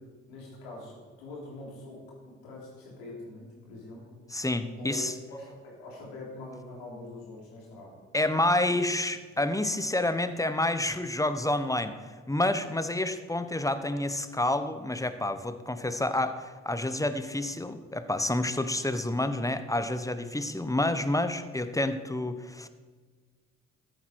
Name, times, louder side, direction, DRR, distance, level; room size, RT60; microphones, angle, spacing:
voice 1, 0.3-4.2 4.8-8.0, left 2 dB, 85° left, -3 dB, 3.3 m, -44 dB
voice 2, 4.3-5.1 8.1-22.7, left 1 dB, 10° left, 10 dB, 1.0 m, -29 dB
13.5 x 9.2 x 4.7 m, 1.5 s
hypercardioid pair, 45°, 36 cm